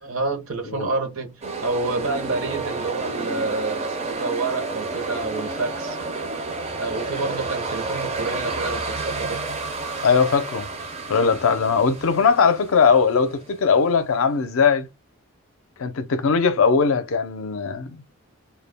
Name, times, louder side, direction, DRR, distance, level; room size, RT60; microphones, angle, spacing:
voice 1, 0.0-6.0 6.8-9.4, right 3 dB, 70° right, 0.7 m, -28 dB
sound 1, 1.4-14.3, right 3 dB, 30° right, 0.4 m, -31 dB
voice 2, 10.0-10.7 11.1-14.9 15.8-18.0, left 5 dB, 70° left, 0.4 m, -20 dB
2.2 x 2.0 x 3.3 m
head